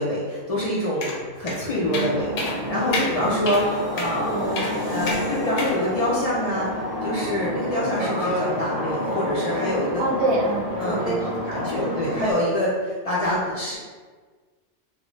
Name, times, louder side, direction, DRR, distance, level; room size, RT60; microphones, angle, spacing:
voice 1, 0.0-4.5 4.9-10.0 10.8-11.1 11.4-13.8, left 1 dB, 75° left, -6 dB, 0.3 m, -26 dB
sound 1, 1.0-1.2 1.5-1.6 1.9-2.1 2.4-2.6 2.9-3.1 3.5-3.6 4.0-4.1 4.6-4.7 5.1-5.2 5.6-5.7, left 3 dB, 90° left, 0.9 m, -28 dB
sound 2, 1.3-7.4 7.8-8.1, left 1 dB, 35° left, 0.8 m, -40 dB
sound 3, 1.8-12.3, equal, 25° right, 0.4 m, -29 dB
voice 2, 3.2-3.5 4.3-4.8 10.0-12.0, right 2 dB, 70° right, -1 dB, 0.8 m, -27 dB
2.6 x 2.2 x 3.0 m, 1.4 s
omnidirectional pair, 1.2 m